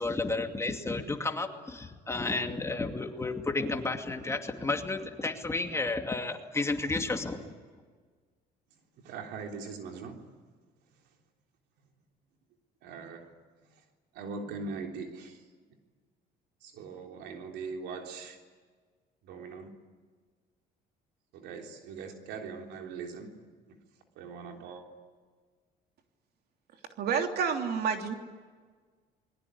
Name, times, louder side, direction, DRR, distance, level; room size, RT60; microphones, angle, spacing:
voice 1, 0.0-7.5, left 3 dB, 15° left, 5 dB, 2.5 m, -32 dB
voice 2, 9.0-10.2 12.8-13.3 14.2-15.4 16.6-18.4 19.2-19.7 21.3-23.3 23.7-23.8 24.2-24.8, right 4 dB, 90° right, 3 dB, 3.6 m, -41 dB
voice 3, 27.0-28.1, right 6 dB, 70° right, 5 dB, 3.2 m, -29 dB
28.0 x 22.0 x 9.8 m, 1.5 s
cardioid pair, 110°, 17 cm